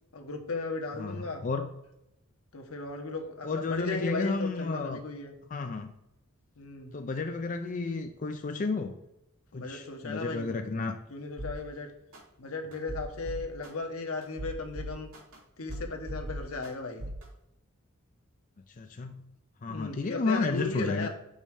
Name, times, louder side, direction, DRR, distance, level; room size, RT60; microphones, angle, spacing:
voice 1, 0.1-1.4 2.5-5.3 6.6-6.9 9.5-10.5 11.1-11.9 12.4-15.1 15.6-17.0 19.7-21.1, left 3 dB, 85° left, 3 dB, 1.1 m, -36 dB
voice 2, 1.0-1.7 3.4-5.0 5.5-5.9 6.9-8.9 9.5-11.0 18.8-19.2 19.6-21.1, left 3 dB, 40° left, 6 dB, 0.4 m, -32 dB
sound 1, 11.4-11.6 12.1-12.2 12.7-13.7 14.2-15.4 15.7-16.7 17.0-17.2, equal, 80° right, 2.5 m, -38 dB
5.5 x 4.3 x 4.8 m, 0.86 s
head